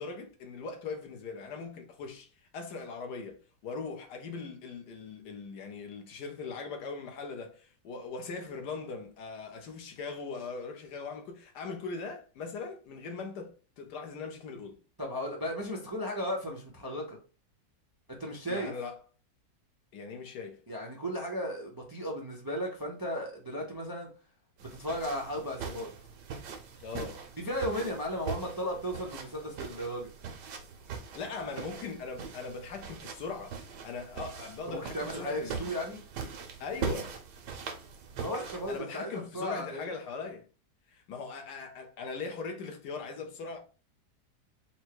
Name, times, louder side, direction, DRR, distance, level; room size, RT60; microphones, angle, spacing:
voice 1, 0.0-2.3 2.5-14.8 18.5-19.0 19.9-20.6 26.8-27.3 31.1-35.7 36.6-37.2 38.7-40.5 40.9-43.6, left 4 dB, 80° left, 1.4 m, -40 dB
voice 2, 15.0-17.2 18.2-18.7 20.7-24.1 24.6-25.9 27.4-30.1 34.7-36.0 38.2-39.9, equal, 25° right, 0.5 m, -35 dB
sound 1, 24.6-38.8, right 6 dB, 85° right, 1.4 m, -41 dB
4.4 x 2.2 x 4.5 m
omnidirectional pair, 1.8 m